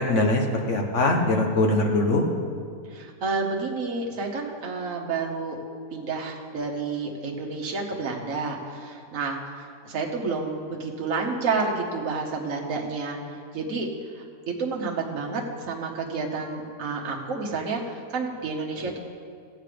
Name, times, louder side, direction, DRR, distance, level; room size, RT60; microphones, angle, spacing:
voice 1, 0.0-2.2, left 2 dB, 55° left, 2 dB, 1.6 m, -22 dB
voice 2, 2.9-5.6 5.9-13.2 13.5-13.9 14.1-19.0, right 4 dB, 65° right, 0 dB, 1.6 m, -30 dB
15.0 x 8.8 x 5.1 m, 2.2 s
omnidirectional pair, 1.5 m